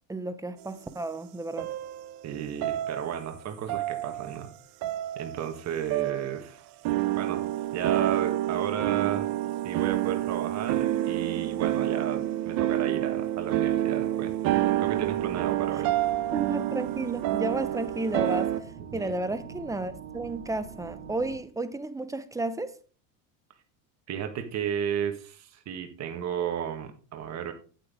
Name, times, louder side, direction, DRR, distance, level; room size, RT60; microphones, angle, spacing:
voice 1, 0.1-1.7 16.3-22.7, right 2 dB, 10° right, 0.7 m, -32 dB
sound 1, 1.6-2.3 2.6-3.4 3.7-4.4 4.8-5.6 5.9-6.4 6.8-18.6, right 14 dB, 55° right, 1.0 m, -28 dB
voice 2, 2.2-4.5 5.2-6.6 7.1-7.5 7.7-9.3 9.6-14.3 14.8-15.9 18.9-19.1 24.1-27.5, right 9 dB, 40° right, 1.6 m, -33 dB
sound 2, 14.5-21.4, right 7 dB, 75° right, 2.3 m, -45 dB
8.9 x 8.3 x 3.7 m
supercardioid pair, 115°, 42 cm